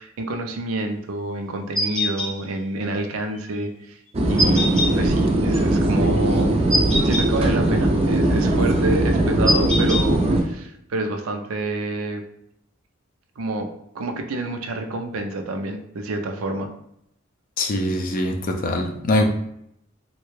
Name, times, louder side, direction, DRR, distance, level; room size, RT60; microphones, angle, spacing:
voice 1, 0.0-4.0 4.3-6.5 7.0-12.2 13.4-13.7 13.9-16.7, right 2 dB, 85° right, 0.4 m, -28 dB
sound 1, 1.8-2.3 4.4-4.9 6.7-7.3 9.5-10.0, left 1 dB, 5° left, 0.7 m, -22 dB
sound 2, 4.1-10.4, right 1 dB, 30° right, 0.4 m, -20 dB
voice 2, 17.6-19.2, left 1 dB, 40° left, 0.4 m, -23 dB
3.2 x 2.2 x 3.1 m
head